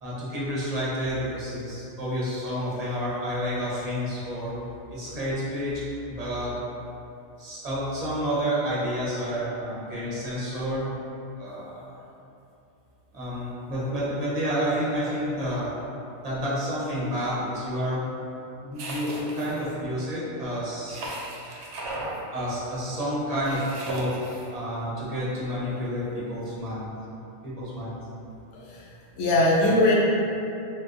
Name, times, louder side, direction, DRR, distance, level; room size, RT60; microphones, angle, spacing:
voice 1, 0.0-4.5 4.9-5.8 6.1-6.5 7.4-10.9 11.4-12.0 13.1-15.7 16.2-18.0 18.6-21.0 22.3-24.1 24.5-26.9 27.4-28.0, equal, 40° right, -8 dB, 0.7 m, -29 dB
sound 1, 18.8-19.7 20.9-22.2 23.4-24.5, right 1 dB, 75° right, 0.8 m, -36 dB
voice 2, 28.5-28.9 29.2-29.9, left 2 dB, 70° left, -5 dB, 0.8 m, -21 dB
3.5 x 2.1 x 2.5 m, 2.8 s
omnidirectional pair, 1.2 m